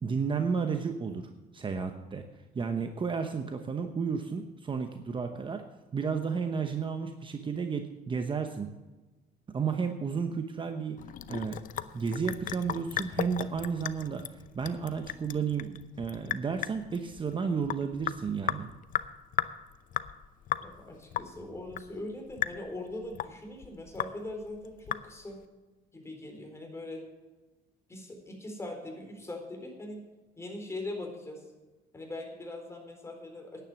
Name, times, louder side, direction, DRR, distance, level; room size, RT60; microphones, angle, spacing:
voice 1, 0.0-2.2 2.5-5.6 5.9-8.7 9.5-11.0 11.3-14.2 14.5-18.7, right 5 dB, 30° right, 6 dB, 0.9 m, -32 dB
Sink (filling or washing) / Drip, 11.0-25.4, left 11 dB, 55° left, 0.6 m, -37 dB
voice 2, 20.6-25.4 25.9-27.0 27.9-30.0 30.4-31.4 31.9-33.6, left 2 dB, 15° left, 2 dB, 4.1 m, -41 dB
10.5 x 9.3 x 7.2 m, 1.1 s
cardioid pair, 110°, 17 cm